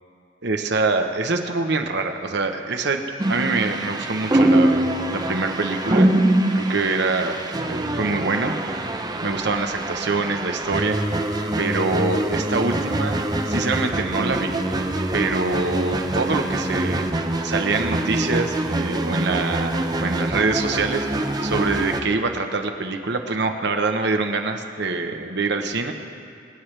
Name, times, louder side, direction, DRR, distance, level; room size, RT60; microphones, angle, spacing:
voice 1, 0.4-3.0 3.3-6.1 6.5-7.4 7.7-8.8 9.2-11.0 11.6-13.2 13.5-14.6 15.1-17.1 17.4-21.1 21.4-25.9, right 3 dB, 65° right, 5 dB, 1.0 m, -25 dB
sound 1, 3.2-22.0, right 1 dB, 20° right, 0.6 m, -24 dB
25.0 x 8.9 x 3.3 m, 2.6 s
head